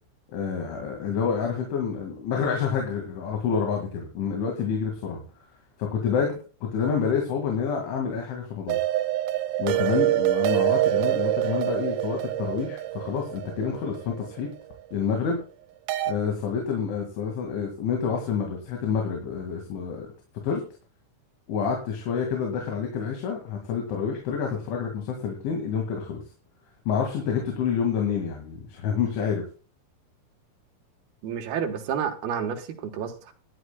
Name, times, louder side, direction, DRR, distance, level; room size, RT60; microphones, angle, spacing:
voice 1, 0.3-5.2 5.8-8.8 9.6-14.5 14.9-15.4 16.1-20.1 20.4-20.6 21.5-26.2 26.9-29.4, left 6 dB, 90° left, 4.6 m, -28 dB
sound 1, 8.7-14.7 15.9-16.1, right 14 dB, 85° right, 3.2 m, -26 dB
voice 2, 31.2-33.3, right 7 dB, 65° right, 2.9 m, -30 dB
20.5 x 11.0 x 2.3 m
omnidirectional pair, 5.3 m